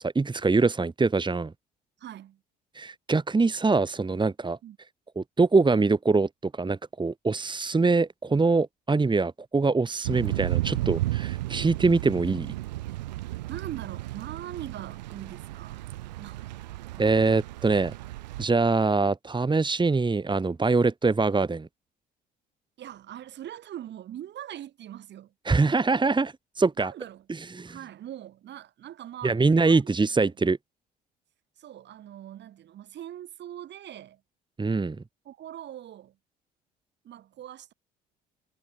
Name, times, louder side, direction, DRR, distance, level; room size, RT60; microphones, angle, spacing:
voice 1, 0.0-1.5 2.7-4.6 5.2-12.5 17.0-17.9 18.4-21.7 25.4-26.9 27.3-27.7 29.2-30.6 34.6-35.0, right 3 dB, 20° right, 2.8 m, -24 dB
voice 2, 2.0-2.4 4.6-4.8 13.5-15.9 16.2-16.5 22.8-25.3 26.8-27.3 27.7-29.8 30.2-30.3 31.6-34.2 35.2-36.2 37.0-37.7, right 11 dB, 55° right, 7.9 m, -42 dB
Thunder / Rain, 10.0-18.4, right 17 dB, 80° right, 6.1 m, -33 dB
hypercardioid pair, 55°, 21 cm